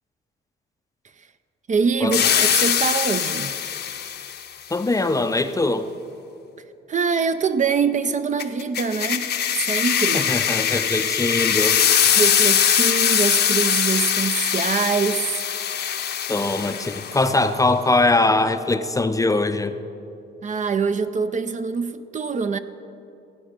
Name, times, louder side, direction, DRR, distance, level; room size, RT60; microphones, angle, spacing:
voice 1, 1.7-3.5 6.9-9.3 9.6-10.3 12.2-15.4 20.4-22.6, right 5 dB, 40° right, 11 dB, 0.5 m, -24 dB
sound 1, 2.1-4.5 8.4-17.3, left 9 dB, 55° left, 0.7 m, -22 dB
voice 2, 4.7-5.9 10.1-11.8 16.3-19.7, left 2 dB, 15° left, 9 dB, 0.5 m, -21 dB
16.5 x 8.7 x 5.1 m, 2.8 s
cardioid pair, 90°, 20 cm